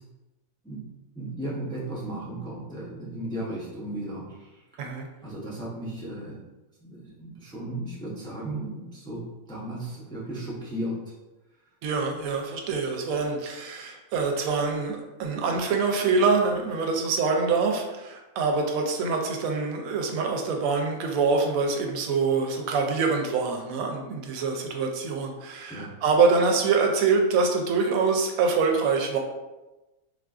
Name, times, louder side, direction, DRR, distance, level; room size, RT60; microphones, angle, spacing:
voice 1, 1.1-4.6 5.2-6.4 6.8-9.2 9.5-11.1 25.7-26.0, right 1 dB, 5° left, -7 dB, 0.3 m, -35 dB
voice 2, 11.8-29.2, right 4 dB, 90° right, 3 dB, 1.0 m, -25 dB
3.7 x 2.5 x 2.3 m, 1.1 s
omnidirectional pair, 1.4 m